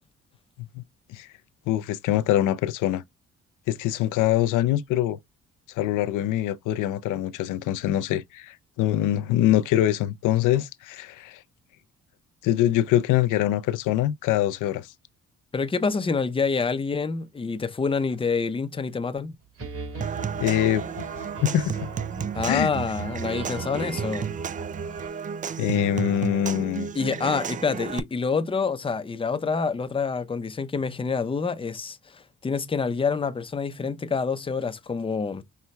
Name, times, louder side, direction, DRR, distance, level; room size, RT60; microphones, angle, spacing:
voice 1, 1.7-3.0 3.7-5.2 5.8-11.4 12.4-14.9 20.4-20.8 21.4-21.8 22.5-22.7 25.6-26.9, left 12 dB, 90° left, 0.6 m, -24 dB
voice 2, 15.5-19.3 22.3-24.3 26.9-35.4, left 5 dB, 20° left, 0.6 m, -27 dB
sound 1, 19.6-25.1, right 4 dB, 50° right, 2.5 m, -37 dB
Human voice / Acoustic guitar / Percussion, 20.0-28.0, right 7 dB, 25° right, 0.3 m, -33 dB
5.8 x 2.2 x 3.2 m
cardioid pair, 90°, 30 cm